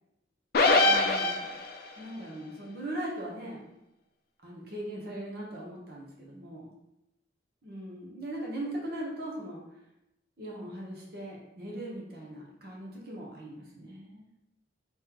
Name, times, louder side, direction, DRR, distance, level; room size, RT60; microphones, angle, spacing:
sound 1, 0.5-1.9, left 2 dB, 50° left, 0.4 m, -23 dB
voice 1, 0.7-1.5 2.0-3.6 4.4-6.7 7.6-9.6 10.4-14.3, right 1 dB, 50° right, -3 dB, 1.0 m, -39 dB
3.6 x 3.2 x 3.0 m, 0.88 s
head